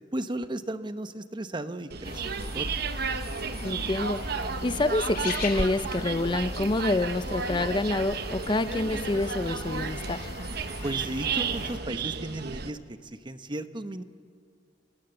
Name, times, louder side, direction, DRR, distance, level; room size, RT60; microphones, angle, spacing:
voice 1, 0.1-2.7 10.8-14.0, right 1 dB, 25° right, 10 dB, 0.9 m, -35 dB
sound 1, 1.9-12.7, right 5 dB, 60° right, 1.0 m, -33 dB
sound 2, 2.0-11.8, left 2 dB, 55° left, 3.4 m, -38 dB
voice 2, 3.6-4.3 4.6-10.3, left 2 dB, 25° left, 13 dB, 0.5 m, -27 dB
29.5 x 20.5 x 7.9 m, 2.3 s
head